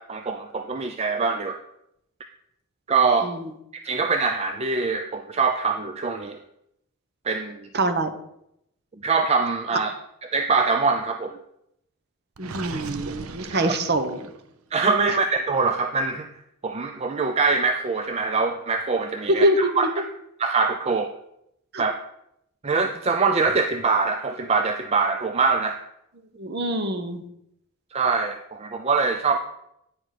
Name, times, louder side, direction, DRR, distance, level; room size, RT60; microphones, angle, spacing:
voice 1, 0.0-1.6 2.9-3.3 3.8-6.4 7.2-7.7 9.0-9.9 10.3-11.4 13.5-13.7 14.7-16.3 16.6-19.9 20.4-21.1 21.8-21.9 22.6-25.8 27.9-29.4, right 4 dB, 30° right, 6 dB, 0.4 m, -23 dB
voice 2, 3.2-3.5 7.7-8.1 12.4-14.3 15.1-15.2 19.3-19.8 21.7-21.8 26.4-27.2, right 1 dB, 45° right, 9 dB, 0.9 m, -24 dB
Gurgling, 12.4-14.5, right 4 dB, 75° right, 0.7 m, -37 dB
9.6 x 5.1 x 5.8 m, 0.78 s
head